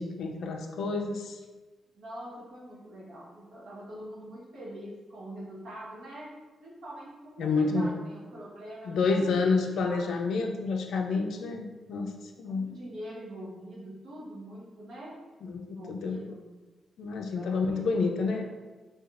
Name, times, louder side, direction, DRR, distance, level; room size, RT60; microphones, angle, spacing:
voice 1, 0.0-1.4 7.4-7.9 8.8-12.1 12.4-12.7 15.5-16.2 17.0-18.4, left 4 dB, 75° left, 3 dB, 0.4 m, -29 dB
voice 2, 1.9-10.1 12.5-15.1 15.6-16.4 17.3-18.4, right 1 dB, 80° right, -6 dB, 1.1 m, -44 dB
4.6 x 2.3 x 2.4 m, 1.3 s
wide cardioid pair, 170°, 0 cm